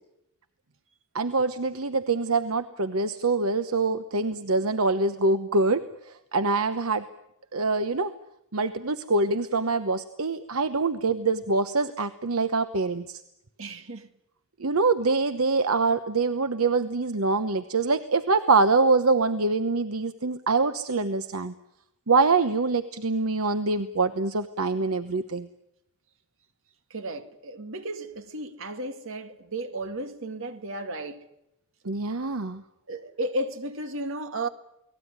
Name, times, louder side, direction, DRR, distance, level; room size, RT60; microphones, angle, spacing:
voice 1, 1.1-7.1 7.5-8.1 8.5-13.2 14.6-21.5 22.1-25.5 31.8-32.6, right 3 dB, 80° right, 1.0 m, -25 dB
voice 2, 13.6-14.1 26.9-31.3 32.9-34.5, right 1 dB, 65° right, 2.1 m, -34 dB
29.5 x 19.5 x 9.6 m
head